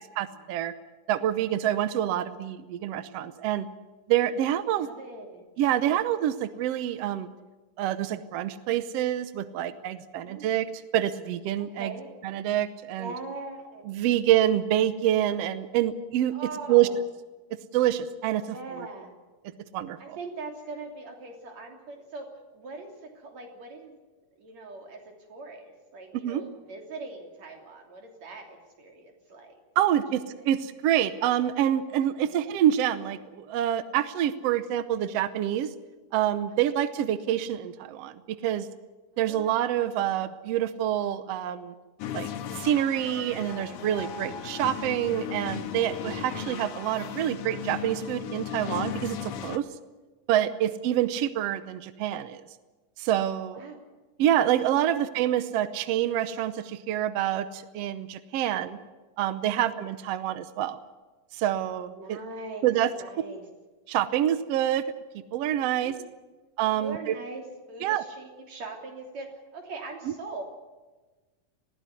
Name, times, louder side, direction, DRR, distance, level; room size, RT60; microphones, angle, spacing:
voice 1, 0.2-0.7 1.1-3.7 4.1-4.9 5.6-7.3 7.8-11.9 12.2-13.1 13.9-16.3 16.7-16.9 17.7-18.5 19.7-20.2 26.2-26.4 29.8-35.7 36.1-38.7 39.2-41.7 42.1-42.3 42.5-49.6 50.3-52.4 53.0-53.6 54.2-58.8 59.2-60.8 61.3-62.2 62.6-62.9 63.9-64.8 65.3-65.9 66.6-67.1 67.8-68.0, right 11 dB, 75° right, 12 dB, 1.5 m, -27 dB
voice 2, 4.7-5.4 10.1-10.5 11.6-12.1 13.0-14.0 16.3-16.9 18.5-19.1 20.0-24.0 24.4-29.6 32.2-32.3 36.6-36.7 39.1-39.6 50.5-50.6 53.5-53.8 54.8-55.0 58.5-58.7 59.5-59.8 61.9-63.5 65.7-66.0 66.7-70.4, right 3 dB, 55° right, 2 dB, 4.2 m, -41 dB
sound 1, 42.0-49.6, left 9 dB, 70° left, 2.4 m, -36 dB
20.5 x 15.5 x 9.6 m, 1.2 s
omnidirectional pair, 3.8 m